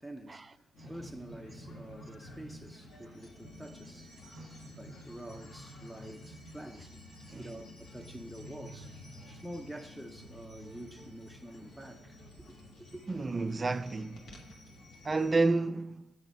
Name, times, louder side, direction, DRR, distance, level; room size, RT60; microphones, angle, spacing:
voice 1, 0.0-4.3 4.8-7.0 7.4-8.9 9.4-12.2 12.5-13.0, right 1 dB, ahead, 0.7 m, -47 dB
sound 1, 0.7-15.6, left 1 dB, 55° left, 1.7 m, -50 dB
voice 2, 13.1-14.3 15.0-16.1, right 3 dB, 30° right, 0.3 m, -31 dB
7.6 x 3.9 x 6.8 m
hypercardioid pair, 60°, 0 cm